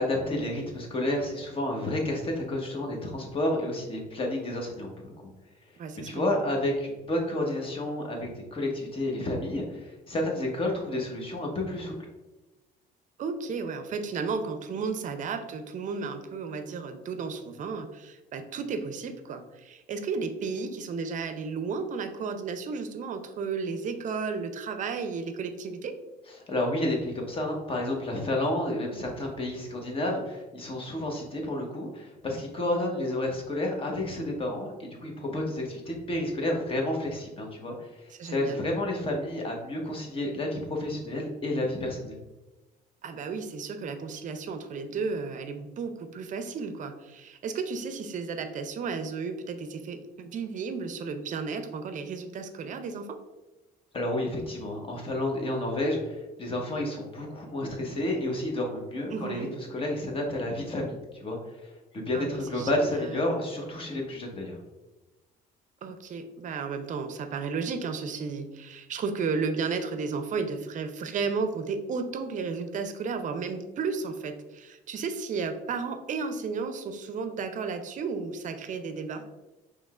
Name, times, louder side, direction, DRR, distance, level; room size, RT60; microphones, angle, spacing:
voice 1, 0.0-5.3 6.0-12.1 26.3-42.2 53.9-64.6, left 1 dB, 35° left, 0 dB, 1.1 m, -30 dB
voice 2, 5.8-6.5 13.2-25.9 38.1-38.6 43.0-53.2 59.1-59.6 62.1-63.1 65.8-79.2, right 5 dB, 50° right, 8 dB, 0.5 m, -33 dB
5.3 x 3.3 x 2.4 m, 1.1 s
cardioid pair, 110°, 17 cm